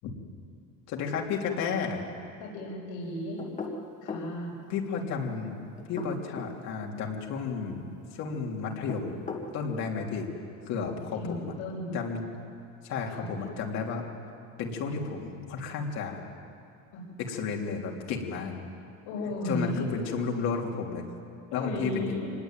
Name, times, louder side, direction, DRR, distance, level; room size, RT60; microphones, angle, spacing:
voice 1, 0.9-2.0 4.7-5.6 5.9-9.2 9.5-10.3 10.7-11.5 11.9-12.2 12.8-14.0 14.6-16.2 17.2-18.6 19.4-21.0 21.5-22.1, left 5 dB, 50° left, 0 dB, 3.4 m, -32 dB
voice 2, 2.4-3.4 4.0-4.5 11.2-12.0 13.1-13.3 16.9-17.0 19.0-19.9 21.5-22.3, left 1 dB, 70° left, -5 dB, 6.3 m, -35 dB
sound 1, 3.4-4.3 5.8-6.6 8.7-9.5, left 4 dB, 20° left, 1.9 m, -37 dB
26.0 x 20.0 x 9.1 m, 2.5 s
cardioid pair, 170°, 35 cm